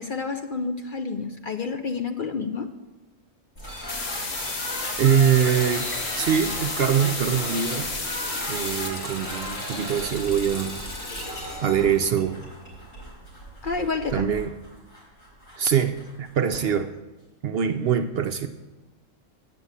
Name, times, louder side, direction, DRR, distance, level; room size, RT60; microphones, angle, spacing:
voice 1, 0.0-2.7 13.6-14.3, left 4 dB, 50° left, 6 dB, 0.6 m, -29 dB
sound 1, 3.6-16.8, equal, 85° left, 5.0 m, -37 dB
sound 2, 3.9-8.9, left 3 dB, 35° left, 1.0 m, -32 dB
Water tap faucet, 4.7-12.4 12.7-13.8, left 1 dB, 65° left, 2.0 m, -38 dB
voice 2, 5.0-5.9 6.2-7.9 8.5-10.9 11.6-12.4 14.1-14.5 15.6-16.9 17.4-18.5, right 8 dB, 60° right, 8 dB, 0.7 m, -23 dB
8.5 x 6.9 x 8.1 m, 1.2 s
omnidirectional pair, 1.3 m